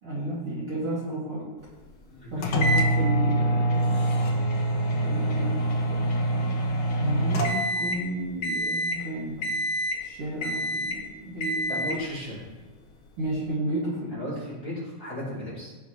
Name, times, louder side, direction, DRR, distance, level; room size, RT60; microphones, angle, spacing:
voice 1, 0.0-1.5 2.3-4.1 5.0-5.6 7.0-9.5 10.0-11.7 13.2-14.3, right 1 dB, 35° right, -9 dB, 3.5 m, -32 dB
voice 2, 2.1-2.5 11.7-12.4 14.1-15.7, left 1 dB, 25° left, -7 dB, 4.2 m, -35 dB
sound 1, 2.4-8.1 8.4-9.0 9.4-10.1 10.4-11.0 11.4-12.0, right 1 dB, 85° left, 1.2 m, -25 dB
18.5 x 6.3 x 3.5 m, 1.3 s
omnidirectional pair, 4.6 m